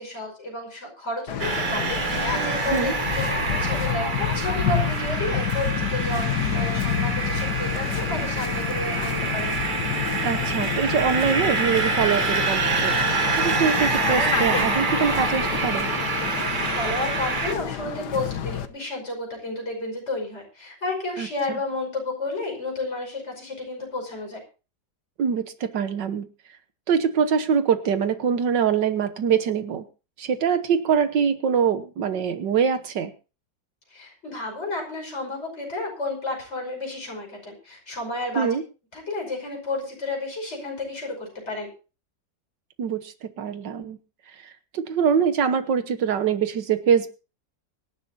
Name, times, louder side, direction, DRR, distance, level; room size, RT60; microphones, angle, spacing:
voice 1, 0.0-3.2 3.6-9.5 16.4-24.4 33.9-38.5 38.9-41.7, left 2 dB, 35° left, 0 dB, 5.9 m, -31 dB
Waves surf, 1.3-18.7, left 9 dB, 70° left, 1.6 m, -29 dB
sound 1, 1.4-17.5, right 4 dB, 30° right, 1.2 m, -26 dB
voice 2, 10.2-13.0 13.3-15.9 21.2-21.6 25.2-26.3 26.9-29.9 30.2-33.1 38.4-38.6 42.8-44.0 44.4-47.1, right 7 dB, 80° right, 10 dB, 1.7 m, -24 dB
24.5 x 11.5 x 2.8 m, 0.33 s
omnidirectional pair, 1.9 m